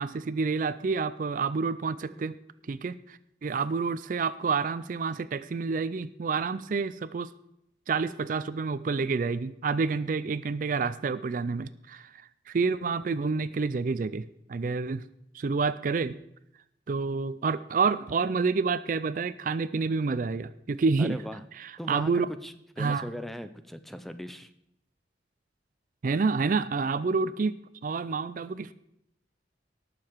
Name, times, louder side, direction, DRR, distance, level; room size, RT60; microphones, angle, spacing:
voice 1, 0.0-2.4 2.7-7.3 7.9-15.0 15.3-16.2 16.9-21.2 21.6-22.3 22.8-23.1 26.0-28.7, right 4 dB, 45° right, 15 dB, 0.4 m, -28 dB
voice 2, 21.0-21.4 21.8-24.5, equal, ahead, 10 dB, 0.6 m, -39 dB
19.0 x 6.7 x 4.6 m, 0.78 s
head